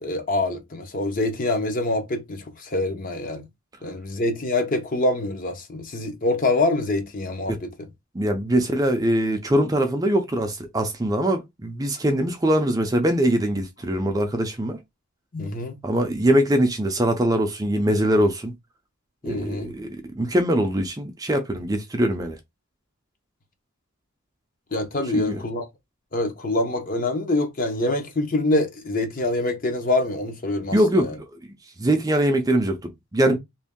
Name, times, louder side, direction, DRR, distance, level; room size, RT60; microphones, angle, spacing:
voice 1, 0.0-3.4 3.8-7.9 15.3-15.8 19.2-19.7 24.7-25.6 26.1-31.2, left 2 dB, 40° left, 0.7 m, -25 dB
voice 2, 8.1-14.8 15.8-18.5 19.2-22.4 25.1-25.4 30.7-31.1 31.8-33.4, right 1 dB, 15° right, 0.4 m, -22 dB
3.0 x 2.6 x 3.6 m
head